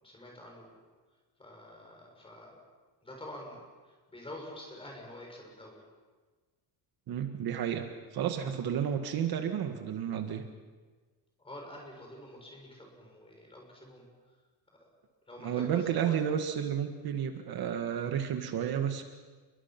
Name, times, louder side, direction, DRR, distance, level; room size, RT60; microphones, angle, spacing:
voice 1, 0.0-0.8 1.4-2.6 3.0-5.8 11.4-14.1 14.7-14.9 15.3-16.2, left 1 dB, 15° left, 0 dB, 6.6 m, -47 dB
voice 2, 7.1-7.9 8.1-10.4 15.4-19.0, right 9 dB, 55° right, 6 dB, 1.9 m, -31 dB
29.0 x 23.5 x 6.1 m, 1.4 s
cardioid pair, 170°, 43 cm